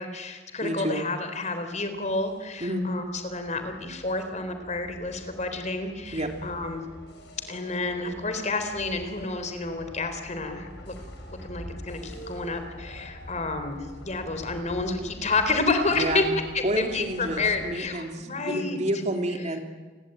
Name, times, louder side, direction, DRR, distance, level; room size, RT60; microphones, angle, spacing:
voice 1, 0.0-6.9 7.5-10.9 11.3-16.2 16.8-18.8, left 3 dB, 40° left, 8 dB, 3.9 m, -30 dB
voice 2, 0.6-1.0 2.6-2.8 6.1-6.3 15.9-16.3 16.6-19.6, right 1 dB, 40° right, 4 dB, 3.1 m, -29 dB
sound 1, 1.6-17.7, left 1 dB, 65° left, 7.7 m, -45 dB
29.5 x 22.5 x 9.0 m, 1.4 s
head